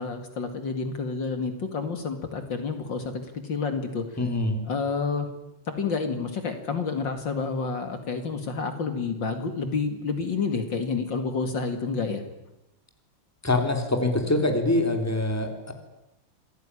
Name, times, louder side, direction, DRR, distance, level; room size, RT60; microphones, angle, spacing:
voice 1, 0.0-4.2 4.6-5.3 5.7-12.2, left 4 dB, 55° left, 7 dB, 2.9 m, -29 dB
voice 2, 4.2-4.6 13.4-15.7, left 2 dB, 5° left, 5 dB, 3.7 m, -24 dB
27.5 x 19.0 x 10.0 m, 0.91 s
omnidirectional pair, 2.4 m